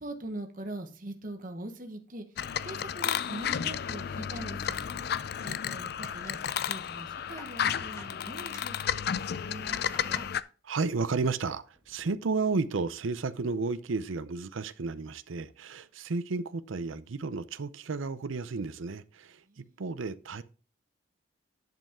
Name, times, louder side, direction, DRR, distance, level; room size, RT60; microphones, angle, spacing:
voice 1, 0.0-2.2 2.6-4.8 5.4-6.4 6.7-10.3 19.5-19.8, right 1 dB, 45° right, 1.1 m, -42 dB
sound 1, 2.4-10.4, left 8 dB, 50° left, 0.4 m, -32 dB
sound 2, 4.6-5.5 5.8-6.5 7.0-8.2 8.5-8.8 9.5-10.3 10.7-11.2 11.6-12.0, left 2 dB, 15° left, 1.3 m, -51 dB
voice 2, 10.6-19.4 19.8-20.4, right 4 dB, 85° right, 0.6 m, -32 dB
10.5 x 5.4 x 3.6 m
head